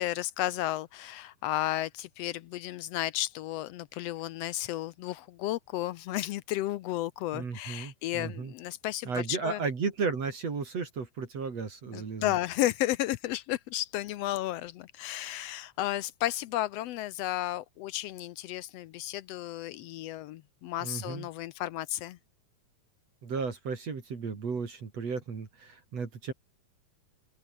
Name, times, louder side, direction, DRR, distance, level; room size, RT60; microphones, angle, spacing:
voice 1, 0.0-9.6 11.9-22.2, left 14 dB, 80° left, 1.4 m, -33 dB
voice 2, 7.3-8.5 9.1-12.4 20.8-21.3 23.2-26.3, right 5 dB, 55° right, 4.4 m, -34 dB
open air
omnidirectional pair, 3.6 m